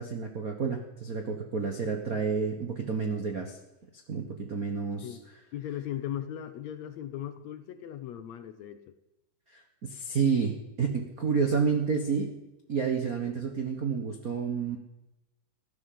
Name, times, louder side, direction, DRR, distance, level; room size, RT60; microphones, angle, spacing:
voice 1, 0.0-3.6 4.1-5.2 9.5-12.3 12.7-14.8, right 5 dB, 60° right, 4 dB, 0.9 m, -30 dB
voice 2, 5.5-8.8, left 11 dB, 70° left, 10 dB, 1.8 m, -38 dB
15.5 x 10.5 x 7.6 m, 0.96 s
omnidirectional pair, 3.7 m